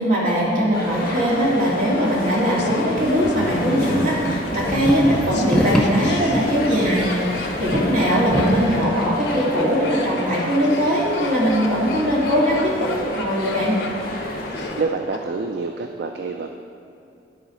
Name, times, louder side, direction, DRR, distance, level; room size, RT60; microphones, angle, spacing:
voice 1, 0.0-12.9 13.2-13.8, equal, 50° right, -5 dB, 2.0 m, -20 dB
sound 1, 0.7-14.8, left 1 dB, 55° left, 1.4 m, -31 dB
Laughter, 2.2-15.2 15.5-15.6, left 2 dB, 80° left, 0.8 m, -33 dB
sound 2, 3.0-8.8, equal, 5° left, 0.6 m, -26 dB
voice 2, 14.8-16.5, right 4 dB, 65° right, 4 dB, 0.4 m, -27 dB
10.5 x 3.9 x 5.5 m, 2.6 s
head